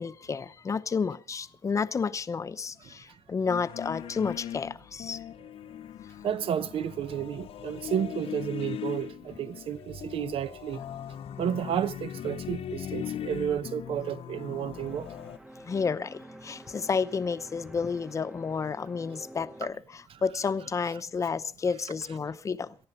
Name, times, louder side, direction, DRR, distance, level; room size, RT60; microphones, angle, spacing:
voice 1, 0.0-5.2 15.6-22.7, left 5 dB, 30° left, 0.8 m, -31 dB
sound 1, 3.5-15.4, left 10 dB, 65° left, 0.7 m, -39 dB
voice 2, 6.2-10.8 11.4-15.1, right 9 dB, 65° right, 0.8 m, -31 dB
sound 2, 14.7-19.7, right 1 dB, 5° right, 1.0 m, -48 dB
18.5 x 14.0 x 5.3 m
wide cardioid pair, 165°, 10 cm